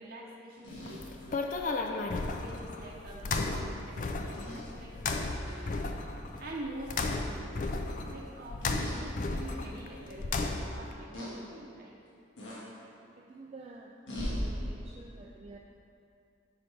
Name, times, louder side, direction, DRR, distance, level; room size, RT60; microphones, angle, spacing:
voice 1, 0.0-5.9 6.4-12.0, right 1 dB, 50° right, -3 dB, 0.7 m, -46 dB
sound 1, 0.6-1.7 3.3-3.5 4.3-4.6 5.4-5.7 6.0-6.2 8.6-9.0 9.6-9.7 11.1-11.3 12.4-12.6 14.1-14.4, equal, 70° left, 1.7 m, -39 dB
sound 2, 0.7-10.9, left 3 dB, 40° left, 0.4 m, -34 dB
voice 2, 13.1-13.9 14.3-15.6, right 3 dB, 30° right, -1 dB, 0.3 m, -49 dB
8.4 x 5.5 x 3.4 m, 2.5 s
head